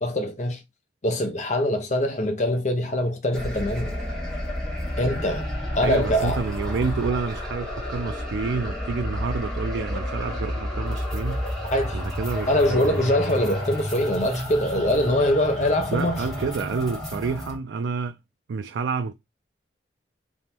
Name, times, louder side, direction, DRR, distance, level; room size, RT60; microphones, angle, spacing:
voice 1, 0.0-0.6 1.0-3.9 5.0-5.5 5.8-6.4 11.7-12.0 12.5-16.2, left 1 dB, 40° left, 0.8 m, -23 dB
sound 1, 3.3-17.6, left 1 dB, ahead, 1.6 m, -30 dB
voice 2, 5.8-11.4 11.9-13.1 15.9-18.2 18.5-19.1, right 5 dB, 85° right, 0.4 m, -29 dB
3.5 x 3.0 x 4.3 m
head